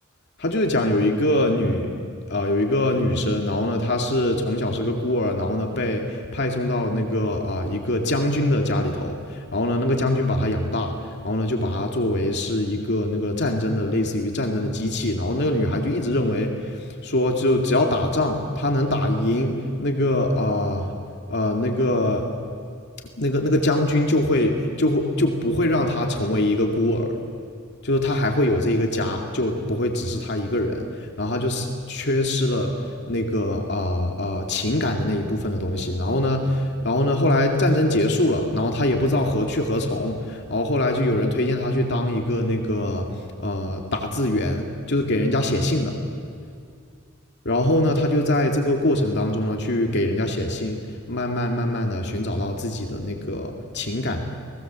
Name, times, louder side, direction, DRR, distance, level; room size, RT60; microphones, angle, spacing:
voice 1, 0.4-1.9 2.3-10.9 11.2-20.9 21.3-22.2 23.2-27.1 27.8-32.7 33.1-43.1 43.4-45.9 47.4-50.8 51.1-54.3, left 1 dB, 55° left, 2 dB, 2.3 m, -23 dB
29.5 x 20.0 x 7.5 m, 2.3 s
head